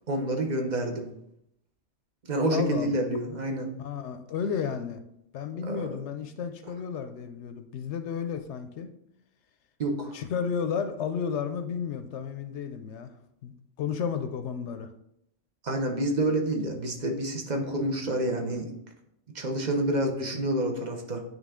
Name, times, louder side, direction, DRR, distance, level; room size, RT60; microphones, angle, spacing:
voice 1, 0.1-1.1 2.3-3.7 5.6-6.0 9.8-10.2 15.6-18.7 19.3-21.2, right 1 dB, 40° right, 3 dB, 1.0 m, -28 dB
voice 2, 2.5-3.0 3.8-5.0 5.3-8.9 10.1-13.1 13.4-14.9, left 7 dB, 75° left, 9 dB, 0.8 m, -32 dB
9.2 x 3.3 x 3.6 m, 0.77 s
omnidirectional pair, 1.2 m